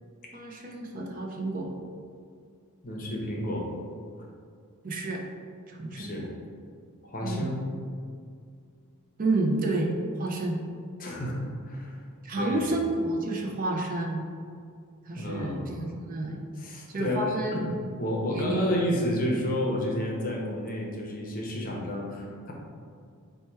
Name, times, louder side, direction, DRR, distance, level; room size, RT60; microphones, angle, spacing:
voice 1, 0.3-1.7 4.8-5.2 5.7-6.2 7.2-7.5 9.2-10.6 12.2-14.2 15.1-16.4 16.9-17.6 18.3-18.8, right 2 dB, 40° right, 0 dB, 0.4 m, -30 dB
voice 2, 2.8-3.7 5.9-6.3 7.0-7.6 11.0-12.0 12.4-12.7 15.2-15.7 16.5-22.5, left 1 dB, 40° left, -1 dB, 0.7 m, -31 dB
4.2 x 2.2 x 4.5 m, 2.2 s
head